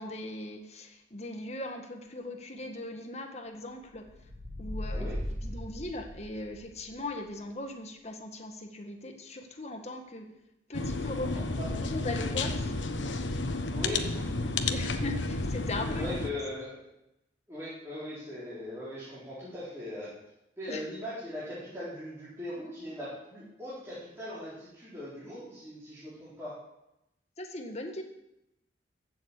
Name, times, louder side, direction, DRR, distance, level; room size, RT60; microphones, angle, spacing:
voice 1, 0.0-4.0 4.6-5.1 5.4-10.3 10.7-11.3 11.6-13.4 14.4-16.1 20.7-20.8 27.4-28.0, left 2 dB, 35° left, 4 dB, 1.7 m, -39 dB
sound 1, 3.9-6.6, equal, 35° right, 1.7 m, -37 dB
sound 2, 10.7-16.3, left 3 dB, 75° left, 1.1 m, -31 dB
voice 2, 11.3-11.8 13.7-14.3 15.9-16.8 17.5-20.1 20.6-26.6, left 1 dB, 15° right, -12 dB, 4.4 m, -40 dB
15.0 x 7.2 x 8.4 m, 0.87 s
head